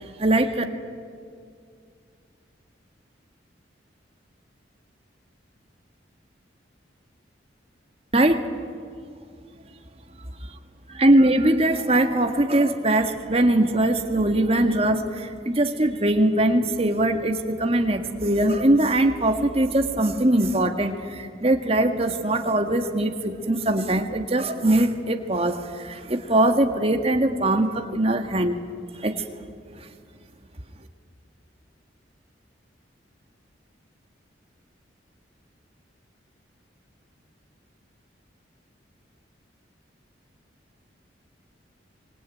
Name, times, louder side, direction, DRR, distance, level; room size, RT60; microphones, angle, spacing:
voice 1, 0.2-0.6 8.1-8.5 10.9-28.6 29.0-29.2, right 1 dB, 30° right, 5 dB, 1.8 m, -21 dB
25.0 x 23.5 x 9.2 m, 2.3 s
head